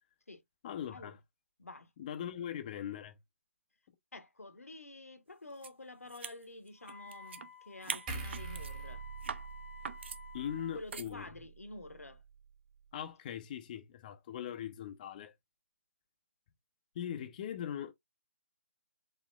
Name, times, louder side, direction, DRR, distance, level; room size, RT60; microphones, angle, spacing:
voice 1, 0.6-1.2 2.0-3.2 10.3-11.2 12.9-15.3 16.9-17.9, left 9 dB, 35° left, 0.4 m, -40 dB
voice 2, 1.6-1.9 4.1-9.0 10.7-12.2, left 2 dB, 90° left, 0.9 m, -49 dB
sound 1, 5.6-5.7 6.0-7.5 7.8-8.7 9.2-9.5 9.8-10.2 10.9-11.1, right 6 dB, 50° right, 0.5 m, -42 dB
Wind instrument woodwind instrument, 6.8-10.8, left 5 dB, 85° right, 0.8 m, -52 dB
sound 2, 8.1-11.4 11.8-12.0, right 4 dB, 30° right, 1.6 m, -44 dB
4.1 x 2.9 x 2.2 m
figure-of-eight pair, 145°, 8 cm